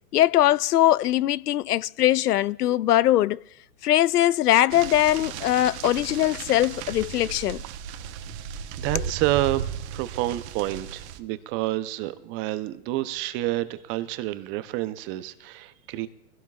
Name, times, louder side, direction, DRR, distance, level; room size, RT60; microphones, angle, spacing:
voice 1, 0.1-3.4 3.8-7.6 8.9-9.0, left 13 dB, 80° left, 0.5 m, -21 dB
sound 1, 4.7-11.2, right 8 dB, 45° right, 1.1 m, -35 dB
voice 2, 8.8-16.1, right 16 dB, 25° right, 0.6 m, -29 dB
23.5 x 16.5 x 2.4 m
hypercardioid pair, 120°, 46 cm